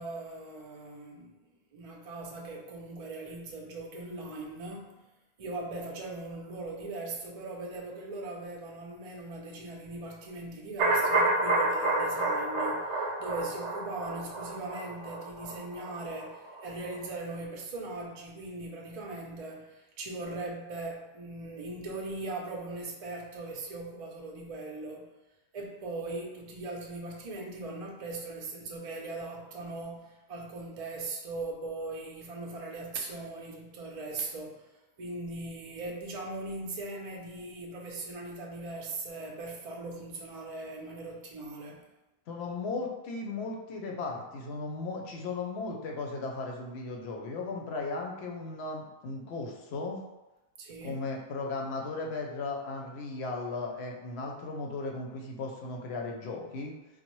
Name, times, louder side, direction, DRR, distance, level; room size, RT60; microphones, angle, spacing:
voice 1, 0.0-1.3 1.7-5.0 5.4-25.1 25.5-34.6 35.0-41.8 50.6-51.0, right 2 dB, 45° right, 0 dB, 0.5 m, -39 dB
sound 1, 10.8-16.7 17.0-17.1, right 2 dB, 85° right, 0.9 m, -29 dB
voice 2, 42.3-50.0 50.8-56.7, left 3 dB, 70° left, 1 dB, 0.8 m, -36 dB
4.0 x 2.1 x 3.0 m, 1.0 s
omnidirectional pair, 1.2 m